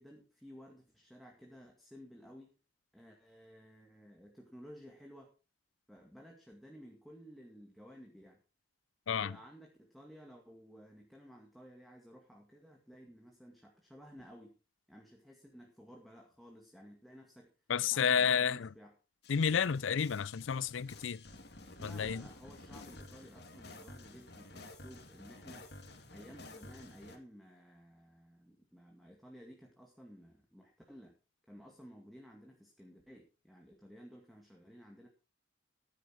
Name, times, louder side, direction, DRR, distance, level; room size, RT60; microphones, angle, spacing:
voice 1, 0.0-2.5 2.9-5.3 5.9-8.4 9.1-14.5 14.9-17.5 17.8-18.9 21.8-25.7 26.1-31.2 31.5-35.1, equal, ahead, 2.1 m, -55 dB
voice 2, 9.1-9.4 17.7-18.7 19.3-21.2 21.8-22.3, left 7 dB, 85° left, 0.5 m, -31 dB
sound 1, 19.2-27.2, left 2 dB, 55° left, 2.3 m, -52 dB
14.5 x 9.6 x 4.7 m
head